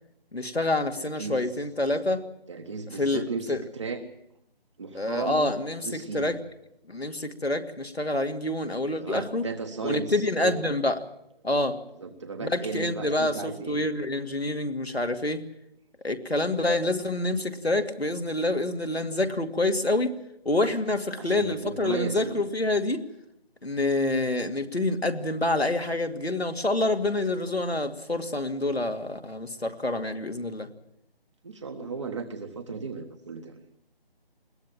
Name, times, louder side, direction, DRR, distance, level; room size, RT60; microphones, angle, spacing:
voice 1, 0.3-2.2 2.9-3.6 4.9-6.4 6.9-9.4 9.8-11.0 11.4-11.8 12.4-15.5 16.0-20.1 20.4-23.1 23.6-30.7, left 2 dB, 90° left, 5 dB, 2.4 m, -27 dB
voice 2, 1.0-1.4 2.5-4.0 4.8-6.3 9.0-10.6 12.0-13.9 21.2-22.4 31.4-33.6, right 4 dB, 30° right, 4 dB, 1.3 m, -35 dB
21.5 x 17.5 x 7.4 m, 0.78 s
figure-of-eight pair, 160°, 30 cm